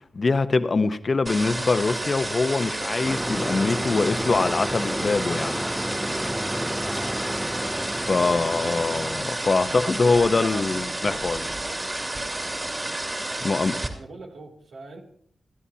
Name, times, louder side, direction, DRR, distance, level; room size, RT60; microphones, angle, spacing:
voice 1, 0.1-5.6 8.1-11.5 13.4-13.7, left 3 dB, 45° left, 0.8 m, -23 dB
sound 1, 1.2-13.9, right 1 dB, 25° right, 2.5 m, -31 dB
sound 2, 1.8-6.8, equal, 60° right, 3.1 m, -46 dB
sound 3, 3.0-9.3, equal, ahead, 0.5 m, -31 dB
voice 2, 8.1-11.9 13.9-15.0, right 2 dB, 80° right, 2.7 m, -42 dB
29.5 x 9.9 x 2.8 m
cardioid pair, 75°, 0 cm